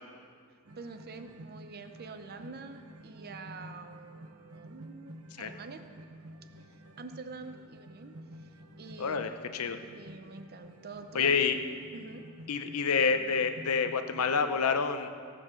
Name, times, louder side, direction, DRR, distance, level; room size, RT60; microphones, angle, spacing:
sound 1, 0.6-14.4, right 1 dB, 75° right, 1.0 m, -51 dB
voice 1, 0.8-5.8 6.7-8.1 8.4-8.5 8.8-9.2 9.9-11.3 11.9-12.3, right 4 dB, 45° right, 8 dB, 0.6 m, -46 dB
voice 2, 9.0-9.8 11.1-11.6 12.5-15.1, left 5 dB, 75° left, 9 dB, 0.7 m, -28 dB
18.0 x 7.7 x 6.3 m, 2.2 s
head